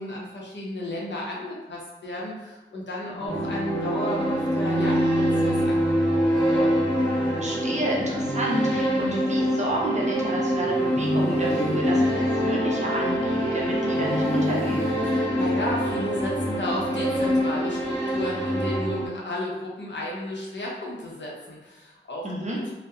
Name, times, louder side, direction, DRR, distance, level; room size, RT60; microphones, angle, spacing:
voice 1, 0.0-6.8 15.0-22.3 22.6-22.7, left 1 dB, 60° left, -3 dB, 0.6 m, -33 dB
sound 1, 3.3-19.1, equal, 5° left, 1.0 m, -25 dB
voice 2, 7.3-14.9 22.2-22.6, right 1 dB, 35° right, -3 dB, 0.6 m, -30 dB
sound 2, 7.4-9.5 10.6-13.3 13.8-16.1, equal, 30° left, 0.9 m, -34 dB
2.6 x 2.1 x 2.3 m, 1.1 s
cardioid pair, 45°, 21 cm